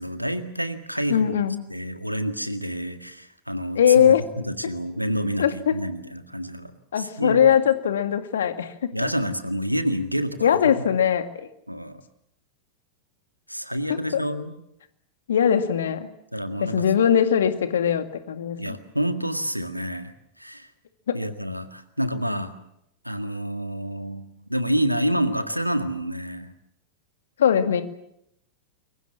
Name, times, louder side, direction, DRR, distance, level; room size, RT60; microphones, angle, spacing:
voice 1, 0.0-1.2 1.7-7.4 8.9-10.6 11.7-12.0 13.5-14.5 16.3-16.8 18.6-20.1 20.4-20.7 21.1-22.5 23.0-24.2 24.5-26.5, equal, 90° right, 9 dB, 1.9 m, -28 dB
voice 2, 1.1-1.6 3.8-4.2 5.4-5.7 6.9-9.1 10.4-11.5 13.9-14.2 15.3-16.1 16.6-18.6 21.1-21.2 27.4-27.8, left 8 dB, 65° left, 9 dB, 2.1 m, -21 dB
28.0 x 23.0 x 7.2 m, 0.78 s
figure-of-eight pair, 90°, 0 cm